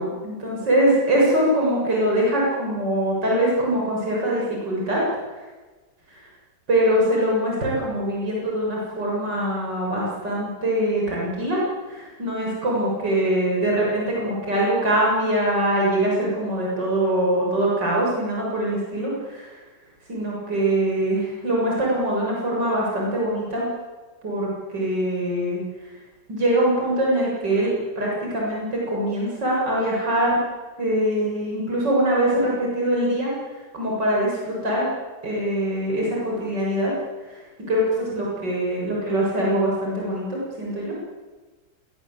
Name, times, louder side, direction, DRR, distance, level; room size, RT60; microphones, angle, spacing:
voice 1, 0.0-5.0 5.3-5.4 6.1-6.2 6.7-11.6 11.9-19.6 20.1-23.7 24.2-25.6 26.3-27.7 28.0-30.4 30.8-33.3 33.7-34.9 35.2-36.9 37.3-37.4 37.7-40.9, right 1 dB, 90° right, -4 dB, 8.0 m, -23 dB
26.5 x 23.0 x 8.5 m, 1.3 s
omnidirectional pair, 1.8 m